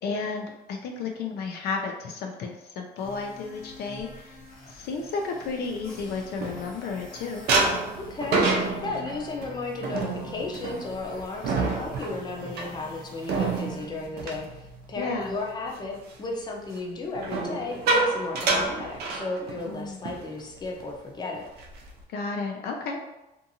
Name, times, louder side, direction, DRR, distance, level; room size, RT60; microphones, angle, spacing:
voice 1, 0.0-4.3 4.7-7.4 15.0-15.3 19.7-20.0 22.1-23.0, left 4 dB, 70° left, 2 dB, 0.4 m, -32 dB
sound 1, 3.0-13.9, left 1 dB, 55° left, 0.8 m, -47 dB
sound 2, 5.6-7.0 7.5-15.3 15.7-16.0 17.1-19.7 20.0-20.2 20.6-20.8 21.3-22.0, right 3 dB, 70° right, 0.5 m, -28 dB
voice 2, 8.1-21.5, left 3 dB, 25° left, -1 dB, 0.6 m, -34 dB
2.6 x 2.5 x 2.7 m, 0.96 s
cardioid pair, 110°, 17 cm